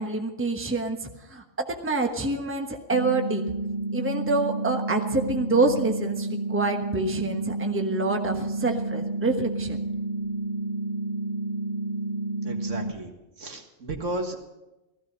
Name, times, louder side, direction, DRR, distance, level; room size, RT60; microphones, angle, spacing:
voice 1, 0.0-3.5 3.9-9.8, right 2 dB, 10° right, 4 dB, 1.2 m, -27 dB
sound 1, 2.9-12.9, right 2 dB, 45° right, 0.6 m, -30 dB
voice 2, 12.4-14.4, right 1 dB, 80° right, 3 dB, 2.1 m, -34 dB
15.5 x 14.5 x 5.3 m, 0.99 s
omnidirectional pair, 1.3 m